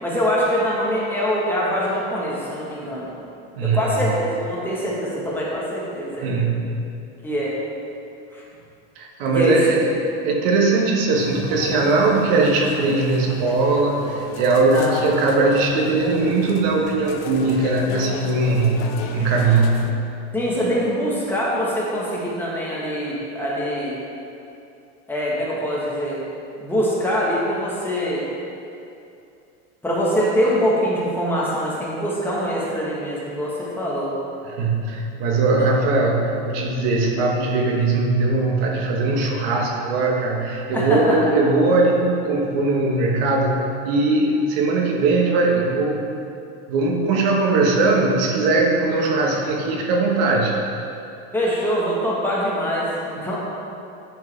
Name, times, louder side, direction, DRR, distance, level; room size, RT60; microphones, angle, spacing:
voice 1, 0.0-3.1 3.6-6.3 7.2-7.5 8.3-8.4 9.3-9.6 14.7-14.9 20.3-24.0 25.1-26.2 26.6-28.2 29.8-34.1 35.5-35.7 40.7-41.2 51.3-53.4, equal, 5° left, -6 dB, 1.2 m, -24 dB
voice 2, 3.5-4.0 6.2-6.8 9.0-9.8 10.2-18.8 19.1-19.9 34.4-46.0 46.7-50.6, right 3 dB, 75° right, -1 dB, 1.3 m, -20 dB
sound 1, 11.1-19.9, left 6 dB, 80° left, 0.7 m, -34 dB
10.5 x 4.7 x 3.3 m, 2.6 s
cardioid pair, 150°, 29 cm